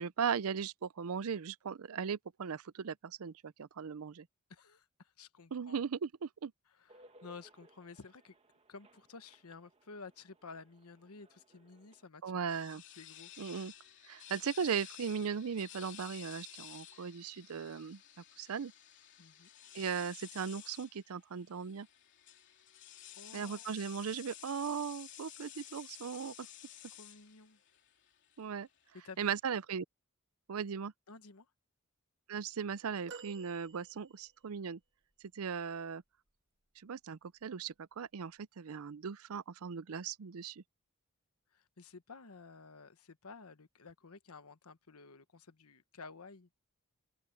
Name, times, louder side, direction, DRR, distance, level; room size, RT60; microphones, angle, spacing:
voice 1, 0.0-4.3 5.5-6.5 12.2-12.8 13.4-13.7 14.1-18.0 18.4-18.7 19.7-21.9 23.3-26.5 28.4-28.7 29.2-29.8 30.5-30.9 32.3-34.8 35.3-36.0 36.8-40.6, right 6 dB, 75° right, 0.5 m, -38 dB
voice 2, 4.5-5.8 6.7-8.4 8.7-12.4 13.0-13.3 19.2-19.5 23.1-23.7 26.9-27.6 28.9-29.3 31.1-31.5 41.5-46.5, left 4 dB, 85° left, 1.2 m, -53 dB
sound 1, 6.9-12.1, right 1 dB, 30° right, 1.5 m, -64 dB
sound 2, 12.5-29.4, left 12 dB, 55° left, 3.3 m, -53 dB
sound 3, 33.1-34.5 35.2-35.3, right 5 dB, 55° right, 2.2 m, -52 dB
open air
head